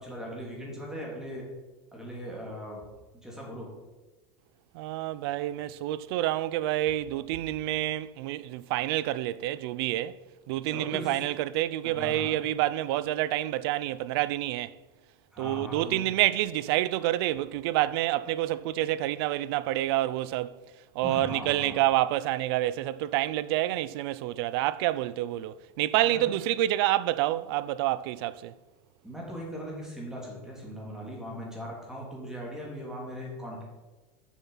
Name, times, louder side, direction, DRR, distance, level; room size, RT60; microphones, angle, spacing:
voice 1, 0.0-1.4 1.9-2.8 3.1-3.7 10.7-11.2 11.8-12.4 15.3-16.1 21.0-21.8 26.0-26.2 29.0-33.6, equal, 5° right, 3.4 m, -39 dB
voice 2, 4.7-10.2 10.5-14.7 15.4-20.6 20.9-28.5, right 14 dB, 70° right, 0.5 m, -28 dB
7.2 x 7.1 x 5.9 m
supercardioid pair, 130°, 13 cm